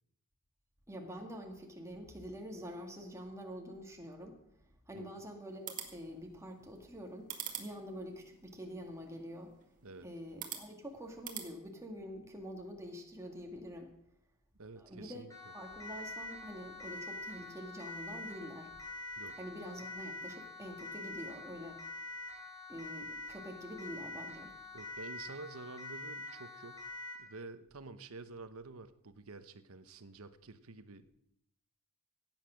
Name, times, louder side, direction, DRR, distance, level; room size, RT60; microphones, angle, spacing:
voice 1, 0.9-4.4 4.9-7.3 7.6-9.5 10.0-13.9 14.8-15.3 15.5-18.8 19.4-21.8 22.7-24.5, equal, 15° right, 2 dB, 2.2 m, -46 dB
sound 1, 5.5-11.5, right 9 dB, 40° right, 1.9 m, -48 dB
voice 2, 14.6-15.5 19.2-19.3 24.7-26.9 27.1-31.2, right 3 dB, 75° right, 12 dB, 1.0 m, -49 dB
Siren, 15.3-27.3, left 2 dB, 15° left, 4.0 m, -45 dB
16.0 x 9.0 x 6.4 m, 0.76 s
head